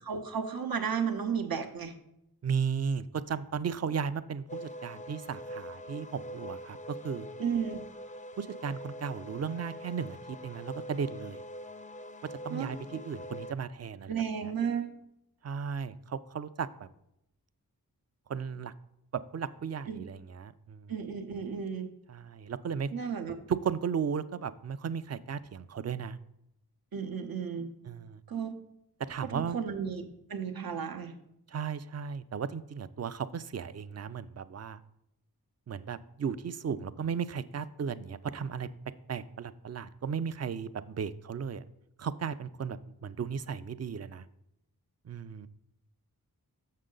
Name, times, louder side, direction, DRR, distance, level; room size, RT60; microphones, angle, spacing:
voice 1, 0.1-1.9 7.4-7.8 12.5-12.7 14.1-14.9 19.9-20.0 20.9-21.9 22.9-23.3 26.9-27.7 28.3-28.5 29.3-31.1, right 7 dB, 70° right, 6 dB, 0.8 m, -33 dB
voice 2, 2.4-7.3 8.4-11.4 12.2-14.1 14.4-14.5 15.4-16.7 18.3-18.7 19.1-20.9 22.1-22.9 23.5-26.2 27.9-28.2 29.1-29.6 31.5-34.8 35.7-38.7 39.1-41.6 42.0-44.3 45.1-45.5, right 6 dB, 45° right, 14 dB, 0.4 m, -35 dB
sound 1, 4.5-13.5, equal, 20° left, 0.4 m, -44 dB
6.6 x 6.4 x 3.8 m, 0.80 s
wide cardioid pair, 55°, 37 cm